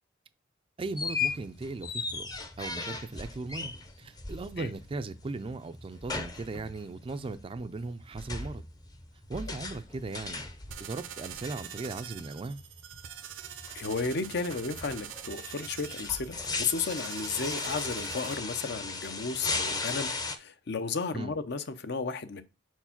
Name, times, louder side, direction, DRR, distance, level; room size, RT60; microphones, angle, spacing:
sound 1, 0.8-20.4, left 4 dB, 20° left, 0.6 m, -38 dB
voice 1, 0.8-2.3 2.6-8.6 9.3-10.5 10.8-12.6 21.1-21.3, right 3 dB, 30° right, 0.3 m, -38 dB
sound 2, 10.7-18.4, right 9 dB, 80° right, 0.6 m, -44 dB
voice 2, 13.7-22.4, left 4 dB, 60° left, 0.7 m, -33 dB
4.6 x 4.5 x 5.8 m
head